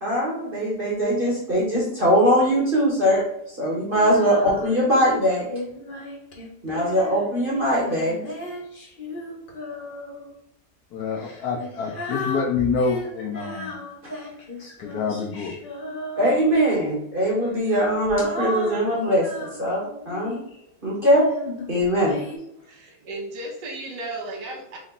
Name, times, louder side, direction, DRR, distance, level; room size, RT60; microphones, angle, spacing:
voice 1, 0.0-5.4 6.6-8.1 16.2-20.3 20.8-21.2 21.7-22.1, equal, 35° right, -5 dB, 1.3 m, -21 dB
Female singing, 3.9-5.0 5.5-10.3 11.1-16.7 17.4-20.6 21.2-22.4, left 1 dB, 40° left, 0.8 m, -35 dB
voice 2, 10.9-13.8 14.8-15.5, left 5 dB, 70° left, 2 dB, 1.0 m, -27 dB
voice 3, 22.7-24.8, right 2 dB, 75° right, 1 dB, 1.5 m, -34 dB
4.1 x 3.1 x 3.6 m, 0.77 s
omnidirectional pair, 1.9 m